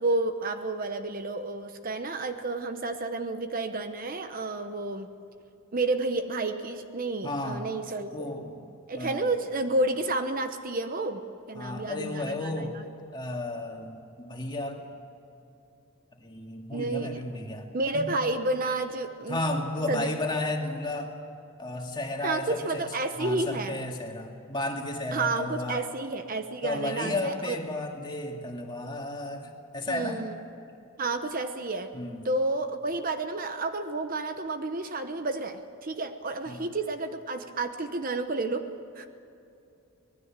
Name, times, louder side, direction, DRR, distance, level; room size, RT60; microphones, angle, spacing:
voice 1, 0.0-5.1 5.7-8.3 8.9-11.2 11.5-12.9 16.7-17.2 17.7-19.4 19.9-20.1 22.2-23.8 25.1-27.6 29.9-30.4 31.0-31.9 32.2-39.1, right 2 dB, 40° right, 8 dB, 0.9 m, -30 dB
voice 2, 7.2-7.7 8.1-8.6 8.9-9.3 11.5-12.8 13.1-14.8 16.2-17.7 17.9-18.1 19.3-21.2 21.6-22.9 23.2-25.8 26.6-30.2 31.9-32.3 36.5-36.7, left 2 dB, 20° left, 1 dB, 2.3 m, -33 dB
25.5 x 19.5 x 7.4 m, 2.7 s
head